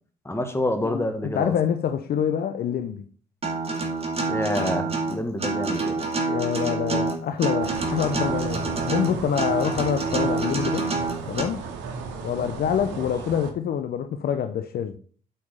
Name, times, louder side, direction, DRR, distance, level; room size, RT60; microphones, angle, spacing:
voice 1, 0.3-1.5 4.3-6.0, left 1 dB, 15° left, 1.9 m, -27 dB
voice 2, 0.8-3.0 6.3-10.9 11.2-11.6 12.2-15.0, left 8 dB, 55° left, 0.7 m, -26 dB
Acoustic guitar, 3.4-11.4, right 3 dB, 30° right, 2.4 m, -27 dB
sound 1, 7.6-13.5, right 5 dB, 70° right, 1.4 m, -35 dB
8.4 x 4.5 x 5.5 m
hypercardioid pair, 50°, 19 cm